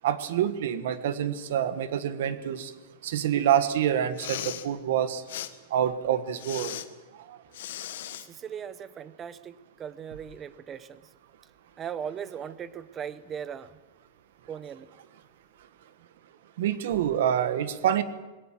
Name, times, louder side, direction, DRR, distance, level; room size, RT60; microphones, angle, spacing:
voice 1, 0.0-2.7 3.0-5.2 5.7-6.8 7.3-7.4 16.6-18.0, right 10 dB, 65° right, 13 dB, 1.5 m, -26 dB
Respiratory sounds, 4.1-4.7 5.3-5.5 6.4-6.9 7.5-8.3, left 12 dB, 70° left, 1.4 m, -37 dB
voice 2, 8.2-11.1 11.8-13.8 14.5-14.9, right 8 dB, 15° right, 16 dB, 0.8 m, -38 dB
20.5 x 17.5 x 7.6 m, 1.2 s
supercardioid pair, 170°, 0 cm